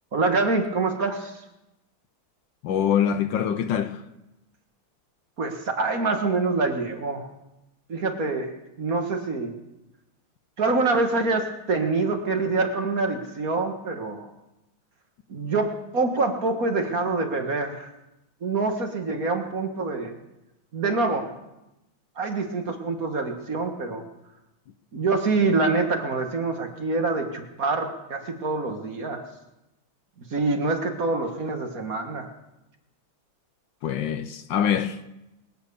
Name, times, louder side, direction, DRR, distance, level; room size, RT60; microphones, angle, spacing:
voice 1, 0.1-1.4 5.4-7.3 7.9-8.5 8.8-9.5 10.6-14.3 15.3-17.9 18.4-20.1 20.7-21.3 22.2-24.0 24.9-29.2 30.3-32.3, right 3 dB, 45° right, 1.9 m, -25 dB
voice 2, 2.6-4.0 33.8-35.0, left 9 dB, 70° left, 1.3 m, -24 dB
22.0 x 9.0 x 6.9 m
omnidirectional pair, 2.3 m